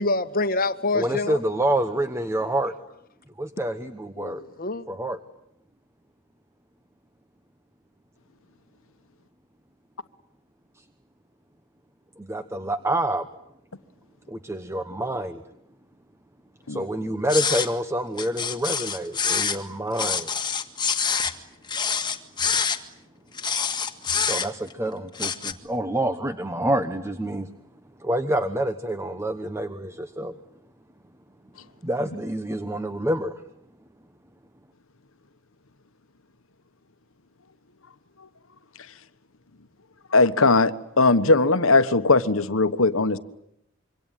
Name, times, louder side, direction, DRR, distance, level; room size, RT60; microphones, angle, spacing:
voice 1, 0.0-1.4 4.2-4.8, left 2 dB, 45° left, 1.3 m, -26 dB
voice 2, 0.9-2.7 3.4-4.4 4.9-5.2 12.2-13.3 14.3-15.4 16.7-20.3 24.2-27.5 28.0-30.4 31.8-33.4, right 1 dB, 15° right, 1.0 m, -27 dB
sound 1, 17.3-17.7 18.2-19.6 20.0-21.4 21.7-22.8 23.4-24.7 25.1-25.5, left 6 dB, 20° left, 1.9 m, -26 dB
voice 3, 40.1-43.2, left 3 dB, 65° left, 1.3 m, -19 dB
26.5 x 24.5 x 9.1 m
head